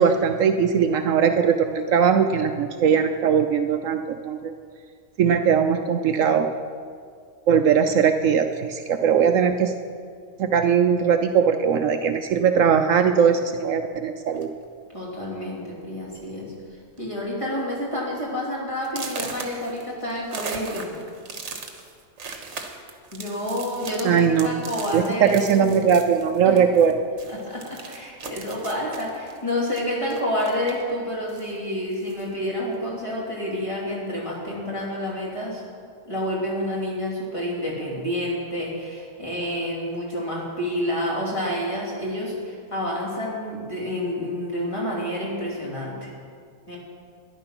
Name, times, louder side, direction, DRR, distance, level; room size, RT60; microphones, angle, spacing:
voice 1, 0.0-4.5 5.2-6.5 7.5-9.7 10.4-14.5 24.0-24.5 24.9-26.9, right 7 dB, 70° right, 7 dB, 1.0 m, -20 dB
sound 1, 14.3-14.7 15.5-15.6 16.0-16.2 16.5-17.0 17.4-17.5 18.0-18.1 18.8-26.9 27.2-30.9 31.3-32.3, right 4 dB, 55° right, 1.4 m, -38 dB
voice 2, 14.9-20.9 23.1-25.7 26.4-26.6 27.3-35.6 36.0-46.1 46.7-46.8, left 1 dB, 20° left, -5 dB, 3.1 m, -29 dB
13.5 x 10.5 x 6.0 m, 2.2 s
omnidirectional pair, 1.5 m